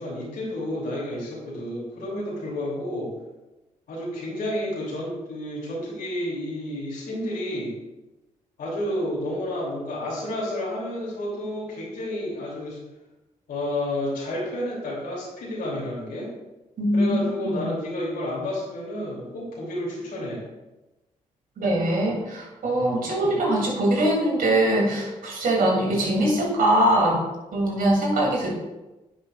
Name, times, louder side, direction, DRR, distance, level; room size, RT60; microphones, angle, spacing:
voice 1, 0.0-3.1 3.9-7.7 8.6-12.8 13.5-16.3 16.9-20.4 23.0-23.4 25.6-26.0, left 1 dB, 75° left, -5 dB, 2.8 m, -30 dB
voice 2, 16.8-17.2 17.4-17.6 21.6-27.2 27.5-28.5, right 1 dB, 65° right, -2 dB, 2.8 m, -22 dB
9.6 x 7.6 x 2.4 m, 1.0 s
hypercardioid pair, 45°, 16 cm